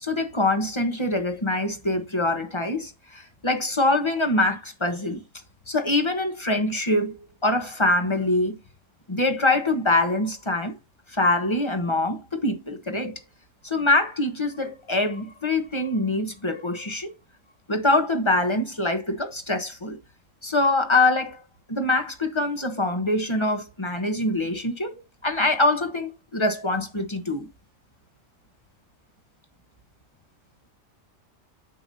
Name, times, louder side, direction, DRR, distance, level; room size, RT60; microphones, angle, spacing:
voice 1, 0.0-5.2 5.7-7.2 7.4-8.6 9.1-10.7 11.1-13.1 13.6-17.1 17.7-20.0 20.4-21.4 21.7-27.5, left 2 dB, 20° left, 1.3 m, -24 dB
9.6 x 6.9 x 2.8 m
omnidirectional pair, 1.4 m